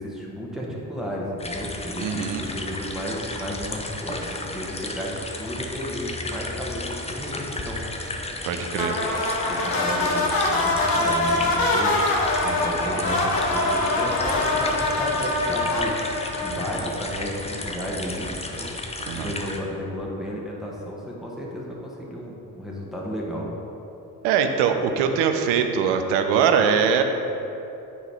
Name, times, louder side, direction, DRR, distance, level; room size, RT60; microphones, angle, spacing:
voice 1, 0.0-7.8 9.5-18.7 19.1-23.5, equal, ahead, -4 dB, 1.5 m, -33 dB
sound 1, 1.4-19.6, left 2 dB, 15° left, 0.7 m, -34 dB
voice 2, 2.0-2.5 8.4-9.0 19.1-19.3 24.2-27.0, right 7 dB, 70° right, 6 dB, 0.7 m, -22 dB
sound 2, 8.7-17.2, left 2 dB, 55° left, 1.1 m, -24 dB
9.3 x 3.9 x 3.5 m, 3.0 s
hypercardioid pair, 45°, 44 cm